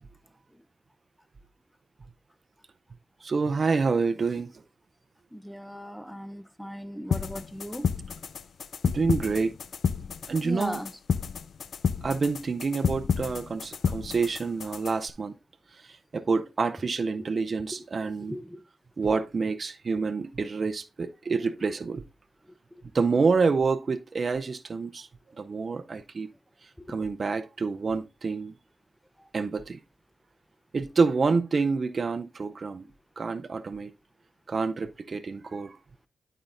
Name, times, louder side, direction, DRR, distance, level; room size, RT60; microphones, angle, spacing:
voice 1, 3.2-4.5 8.9-9.5 10.3-10.8 12.0-15.3 16.1-18.4 19.0-22.0 22.9-25.1 25.4-26.3 26.9-28.5 29.3-29.8 30.7-32.8 33.2-33.9 34.5-35.8, right 4 dB, 55° right, 0.6 m, -27 dB
voice 2, 5.3-7.9 10.4-10.9 17.1-17.3 17.7-17.8 18.2-18.6 21.3-21.4 26.8-27.0 29.2-29.3, equal, ahead, 0.7 m, -38 dB
sound 1, 7.1-15.1, left 6 dB, 70° left, 0.4 m, -31 dB
11.0 x 5.4 x 2.5 m
supercardioid pair, 50°, 0 cm